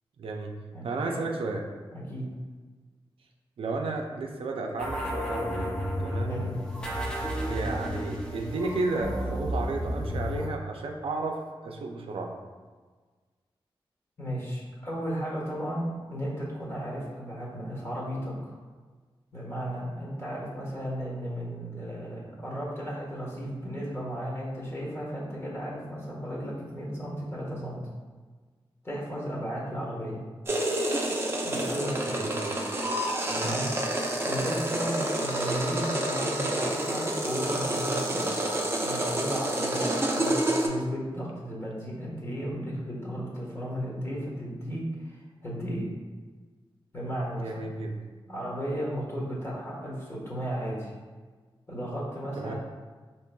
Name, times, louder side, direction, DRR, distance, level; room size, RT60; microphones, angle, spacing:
voice 1, 0.2-0.5 0.8-1.6 3.6-5.8 6.0-6.4 7.5-12.3 32.0-32.8 33.3-33.6 47.4-48.0 52.4-52.5, right 3 dB, 75° right, 2 dB, 0.4 m, -33 dB
voice 2, 0.7-1.2 1.9-2.3 6.3-6.5 14.2-18.6 19.3-27.8 28.8-30.2 31.4-32.2 33.3-33.7 34.2-38.3 38.8-45.9 46.9-47.6 48.3-50.9 51.7-52.5, equal, 30° left, -5 dB, 1.3 m, -34 dB
sound 1, 4.8-10.5, equal, 10° left, 0.8 m, -32 dB
sound 2, 30.5-40.7, right 1 dB, 25° right, 0.6 m, -28 dB
4.4 x 3.0 x 2.2 m, 1.4 s
cardioid pair, 60°, 9 cm